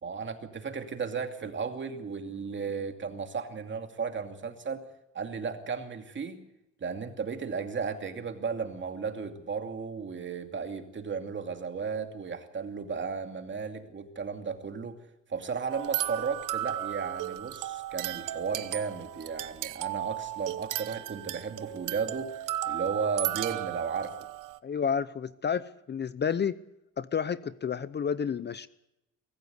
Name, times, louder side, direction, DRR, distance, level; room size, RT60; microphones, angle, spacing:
voice 1, 0.0-4.9 5.1-6.4 6.8-15.0 15.3-22.3 22.7-24.1, right 5 dB, 35° right, 6 dB, 2.6 m, -34 dB
sound 1, 15.7-24.6, right 14 dB, 75° right, 1.0 m, -35 dB
voice 2, 24.6-26.5 27.0-28.7, left 7 dB, 35° left, 16 dB, 0.7 m, -30 dB
24.0 x 14.5 x 8.1 m, 0.89 s
cardioid pair, 105°, 31 cm